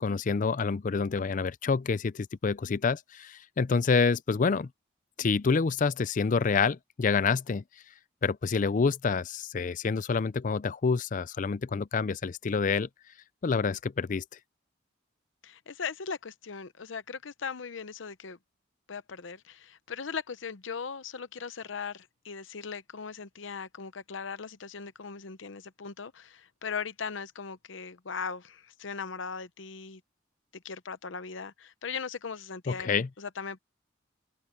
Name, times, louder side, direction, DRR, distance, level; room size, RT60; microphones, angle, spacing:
voice 1, 0.0-4.7 5.2-7.6 8.2-12.9 13.4-14.2 32.7-33.1, left 5 dB, 45° left, 0.4 m, -27 dB
voice 2, 15.4-18.4 18.9-30.0 30.5-33.6, left 5 dB, 80° left, 0.8 m, -39 dB
open air
head